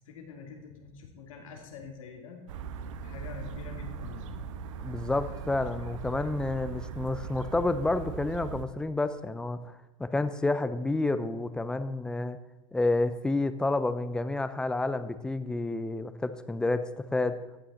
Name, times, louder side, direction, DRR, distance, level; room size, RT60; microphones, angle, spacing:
voice 1, 0.0-2.4 3.0-4.4, left 5 dB, 85° left, 2 dB, 2.7 m, -45 dB
sound 1, 2.5-8.7, right 6 dB, 70° right, 1.0 m, -39 dB
voice 2, 4.8-9.7 10.0-12.4 12.7-17.4, left 2 dB, 5° left, 12 dB, 0.5 m, -29 dB
14.0 x 9.1 x 4.2 m, 1.0 s
supercardioid pair, 145°, 17 cm